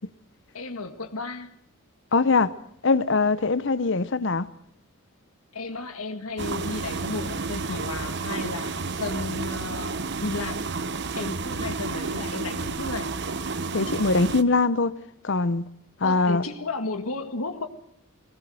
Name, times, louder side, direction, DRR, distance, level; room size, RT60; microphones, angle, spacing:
voice 1, 0.5-1.5 5.5-10.6 11.1-13.1 16.0-17.7, left 3 dB, 85° left, 1.9 m, -33 dB
voice 2, 2.1-2.5 2.8-4.5 13.7-15.0 15.2-15.7 16.0-16.4, left 3 dB, 55° left, 0.8 m, -22 dB
sound 1, 6.4-14.4, right 4 dB, 55° right, 0.9 m, -31 dB
22.0 x 19.0 x 7.8 m
head